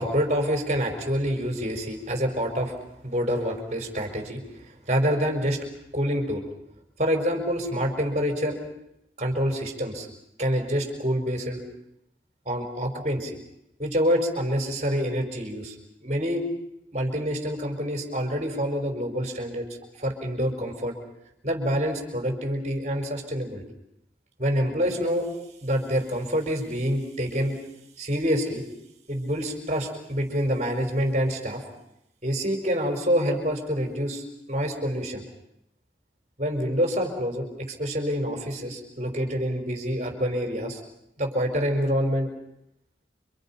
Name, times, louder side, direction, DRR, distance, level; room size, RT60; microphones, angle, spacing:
voice 1, 0.0-2.7 3.0-4.4 4.9-5.6 5.9-6.4 7.0-8.6 9.2-10.1 10.4-11.6 12.5-13.3 13.8-15.7 16.0-16.5 16.9-19.7 20.0-20.9 21.4-23.6 24.4-25.3 25.6-27.6 28.0-28.6 29.1-31.6 32.2-34.2 34.5-35.2 36.4-40.8 41.2-42.3, equal, 35° right, 4 dB, 5.3 m, -26 dB
30.0 x 26.0 x 5.8 m, 0.79 s
head